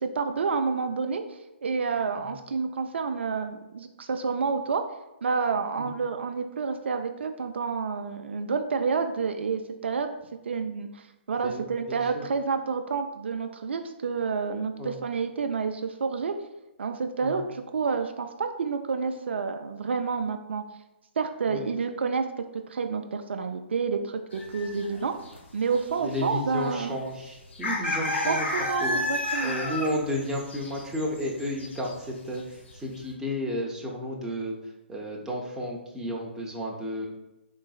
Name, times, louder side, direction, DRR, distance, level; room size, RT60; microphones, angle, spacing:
voice 1, 0.0-4.8 5.2-10.1 10.5-16.3 16.8-20.6 21.2-22.3 22.5-25.1 25.5-27.1 28.3-29.6, right 5 dB, 70° right, 6 dB, 0.4 m, -29 dB
voice 2, 11.4-12.2 14.8-14.9 17.2-17.3 21.5-21.7 26.0-28.5 28.8-29.0 29.4-34.5 34.9-37.1, left 1 dB, 5° right, -2 dB, 0.6 m, -32 dB
sound 1, 24.3-25.0 25.2-25.4 25.7-26.3 26.6-26.7 27.5-31.9 32.2-32.4 32.8-33.0, left 1 dB, 75° left, 0.9 m, -31 dB
3.9 x 3.8 x 2.3 m, 0.96 s
figure-of-eight pair, 135°, 6 cm